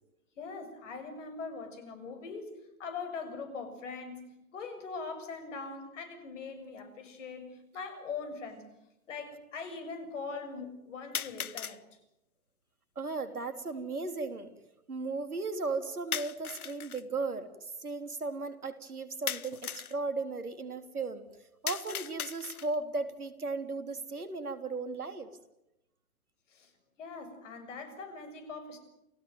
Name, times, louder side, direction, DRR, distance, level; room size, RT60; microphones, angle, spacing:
voice 1, 0.4-4.2 4.5-8.7 9.1-11.8 26.5-26.7 27.0-28.8, left 4 dB, 55° left, 8 dB, 6.9 m, -41 dB
sound 1, 6.8-6.9 7.9-8.0 11.1-11.8 16.1-17.0 19.3-20.0 21.7-22.8, left 8 dB, 80° left, 1.1 m, -37 dB
voice 2, 12.9-14.5 14.9-21.3 21.6-25.3, right 3 dB, 90° right, 9 dB, 3.5 m, -36 dB
29.0 x 17.0 x 9.2 m, 0.88 s
hypercardioid pair, 125°, 43 cm